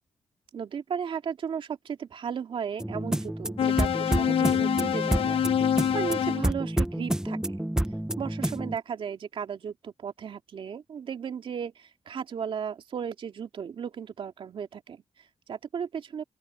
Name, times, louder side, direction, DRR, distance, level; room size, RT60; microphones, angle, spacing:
voice 1, 0.5-7.7 8.2-16.2, right 7 dB, 65° right, 2.2 m, -35 dB
sound 1, 2.8-8.8, right 1 dB, 5° right, 0.9 m, -29 dB
sound 2, 3.6-6.5, left 9 dB, 75° left, 1.1 m, -26 dB
open air
cardioid pair, 65°, 10 cm